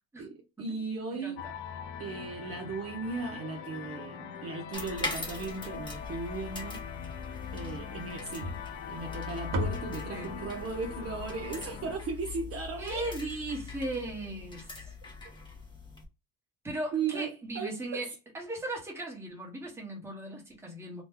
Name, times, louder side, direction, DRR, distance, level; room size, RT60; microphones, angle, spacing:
voice 1, 0.2-1.4 2.0-6.8 7.5-8.6 8.9-13.1 16.9-17.3 17.5-18.0, right 4 dB, 40° right, 0.6 m, -36 dB
voice 2, 1.1-1.5 10.1-10.3 12.8-14.9 16.6-18.1 18.3-21.0, right 2 dB, 5° right, 1.0 m, -37 dB
sound 1, 1.4-12.0, left 7 dB, 50° left, 0.5 m, -42 dB
sound 2, 4.7-16.0, left 4 dB, 10° left, 0.7 m, -42 dB
sound 3, 8.4-12.7, equal, 55° right, 1.0 m, -38 dB
2.9 x 2.2 x 3.4 m
cardioid pair, 145°, 38 cm